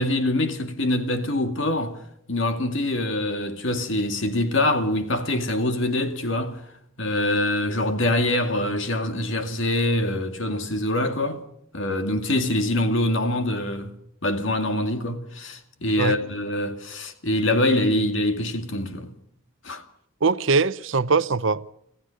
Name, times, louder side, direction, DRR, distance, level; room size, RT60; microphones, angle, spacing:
voice 1, 0.0-2.0 2.3-6.6 7.0-11.4 11.7-13.9 14.2-19.1 19.6-19.8, left 1 dB, 60° left, 2.3 m, -24 dB
voice 2, 20.2-21.7, right 4 dB, 60° right, 0.7 m, -22 dB
26.5 x 15.0 x 6.5 m
head